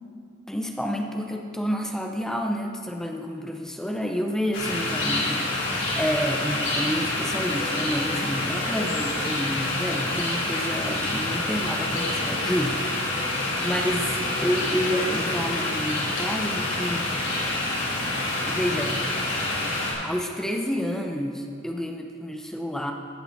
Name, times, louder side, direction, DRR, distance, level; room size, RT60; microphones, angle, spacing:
voice 1, 0.5-13.2 13.6-14.1 14.4-17.1 18.5-19.0 20.0-22.9, equal, 5° left, 2 dB, 0.6 m, -29 dB
sound 1, 4.5-19.9, left 2 dB, 85° left, 2.8 m, -27 dB
16.0 x 6.7 x 4.1 m, 2.3 s
head